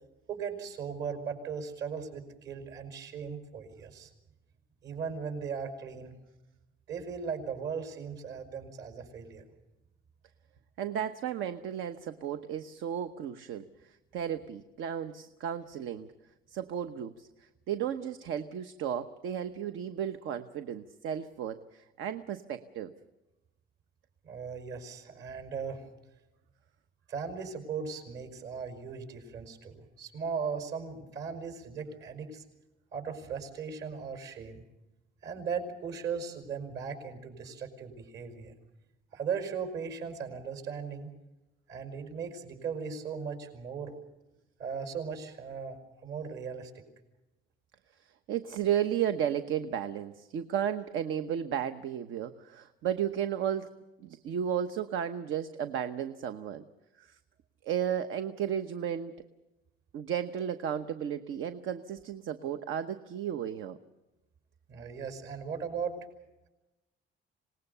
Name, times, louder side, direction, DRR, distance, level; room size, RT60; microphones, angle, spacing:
voice 1, 0.3-4.1 4.8-6.1 6.9-9.4 24.2-25.8 27.1-32.4 32.9-34.6 35.2-38.5 39.1-41.1 41.7-44.0 44.6-46.8 64.7-66.0, right 6 dB, 60° right, 7 dB, 5.5 m, -38 dB
voice 2, 10.8-13.7 14.1-16.1 16.5-17.3 17.7-22.9 48.3-53.7 54.0-56.6 57.0-57.2 57.6-59.1 59.9-63.8, right 9 dB, 80° right, 9 dB, 1.0 m, -33 dB
26.5 x 19.5 x 6.8 m, 1.0 s
cardioid pair, 160°, 20 cm